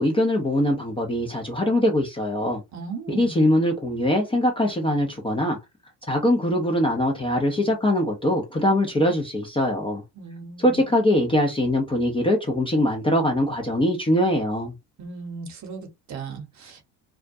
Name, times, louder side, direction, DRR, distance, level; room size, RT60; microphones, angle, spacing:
voice 1, 0.0-2.6 3.1-5.6 6.1-10.0 10.6-14.7, left 1 dB, 10° left, 0.5 m, -22 dB
voice 2, 2.7-3.4 10.1-10.8 15.0-16.8, right 5 dB, 40° right, 0.9 m, -37 dB
2.3 x 2.1 x 2.6 m
supercardioid pair, 95°, 45 cm